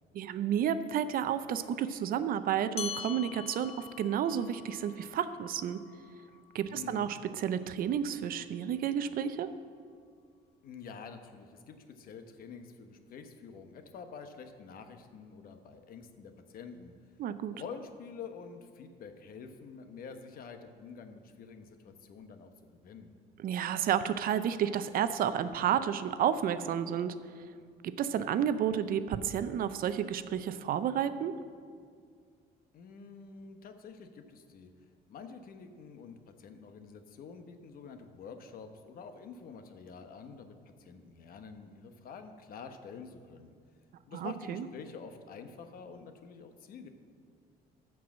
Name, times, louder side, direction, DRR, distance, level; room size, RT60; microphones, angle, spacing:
voice 1, 0.1-5.8 6.5-9.5 17.2-17.5 23.4-27.1 27.8-31.3 44.1-44.7, right 9 dB, 60° right, 12 dB, 0.6 m, -31 dB
sound 1, 2.8-7.6, left 8 dB, 35° left, 0.4 m, -45 dB
voice 2, 6.7-7.2 10.6-16.9 17.5-23.1 32.7-34.7 35.1-43.5 44.1-46.9, left 5 dB, 60° left, 7 dB, 1.0 m, -47 dB
13.5 x 4.7 x 7.2 m, 2.1 s
cardioid pair, 110°, 17 cm